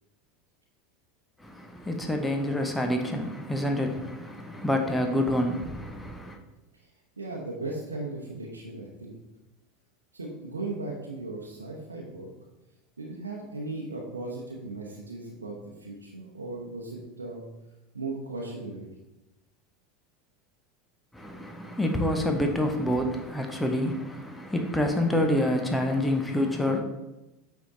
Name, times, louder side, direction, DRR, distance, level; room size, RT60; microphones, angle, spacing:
voice 1, 1.4-6.4 21.1-26.8, left 1 dB, 10° left, 0.8 m, -27 dB
voice 2, 7.2-9.2 10.1-12.3 13.0-17.5 17.9-18.9, right 2 dB, 80° right, 0.9 m, -37 dB
8.6 x 3.6 x 3.8 m
figure-of-eight pair, 80°, 0 cm